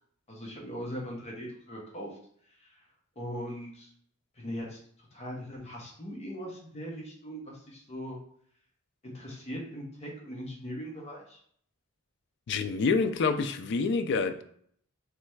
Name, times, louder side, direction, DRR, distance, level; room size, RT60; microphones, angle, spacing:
voice 1, 0.3-2.2 2.4-2.9 3.2-3.9 4.4-4.8 5.1-8.2 9.0-11.4, equal, 30° left, -1 dB, 0.8 m, -40 dB
voice 2, 12.5-14.4, left 4 dB, 55° left, 8 dB, 0.4 m, -27 dB
3.3 x 3.2 x 3.1 m, 0.62 s
head